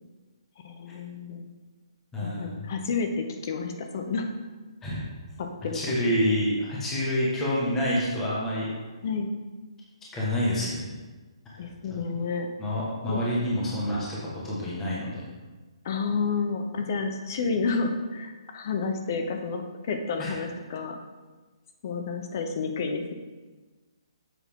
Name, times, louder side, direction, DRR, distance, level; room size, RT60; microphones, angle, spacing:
voice 1, 0.6-1.5 2.2-4.3 5.4-5.8 9.0-9.3 11.6-12.5 13.1-13.3 15.8-21.0 21.8-23.1, left 4 dB, 35° left, 5 dB, 0.8 m, -30 dB
voice 2, 2.1-2.6 4.8-5.0 5.7-8.7 10.1-11.0 12.6-15.2 20.2-20.3, left 1 dB, 10° left, -7 dB, 1.5 m, -27 dB
8.0 x 7.5 x 3.7 m, 1.3 s
hypercardioid pair, 170°, 3 cm